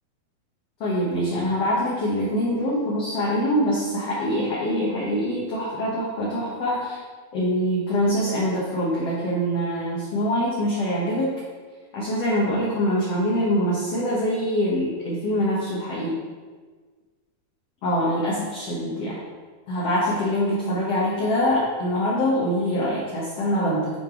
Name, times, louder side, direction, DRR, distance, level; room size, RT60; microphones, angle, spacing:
voice 1, 0.8-7.0 7.3-11.3 11.9-16.1 17.8-19.2 19.7-23.9, equal, 70° left, -6 dB, 1.5 m, -24 dB
8.6 x 4.6 x 3.7 m, 1.5 s
omnidirectional pair, 4.4 m